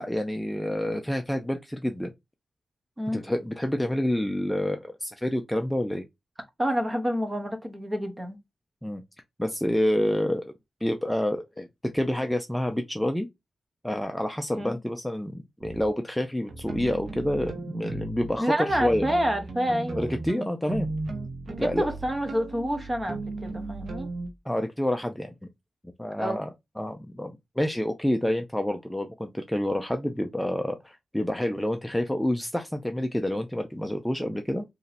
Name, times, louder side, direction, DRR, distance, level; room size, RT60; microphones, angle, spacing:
voice 1, 0.0-2.1 3.1-6.1 8.8-9.0 9.4-10.4 10.8-11.7 11.9-13.3 13.8-19.1 20.0-20.9 21.6-21.9 24.5-25.3 26.0-26.5 26.8-34.6, left 1 dB, 5° left, 0.4 m, -28 dB
voice 2, 6.6-8.4 14.6-14.8 18.4-20.1 21.5-24.1 26.2-26.4, equal, 20° right, 0.9 m, -28 dB
sound 1, 15.6-15.9 16.5-18.3 18.7-24.3, right 2 dB, 60° right, 0.8 m, -36 dB
3.0 x 2.7 x 4.1 m
wide cardioid pair, 115°, 0 cm